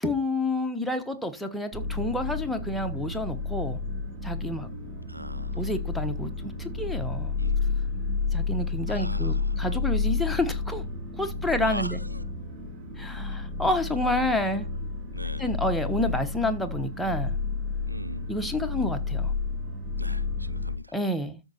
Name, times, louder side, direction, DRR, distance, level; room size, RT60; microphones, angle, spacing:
voice 1, 0.0-3.8 4.2-4.7 5.5-7.4 8.3-10.8 11.2-12.0 13.0-14.7 15.4-17.4 18.3-19.3 20.9-21.4, left 1 dB, ahead, 1.2 m, -29 dB
sound 1, 1.7-20.8, left 4 dB, 30° right, 6.9 m, -31 dB
voice 2, 5.1-5.7 7.4-7.6 8.9-10.0 11.6-12.2 14.4-14.7 15.1-15.5 17.9-18.4 20.0-20.9, right 1 dB, 85° right, 0.9 m, -41 dB
13.0 x 5.3 x 4.2 m
figure-of-eight pair, 125°, 0 cm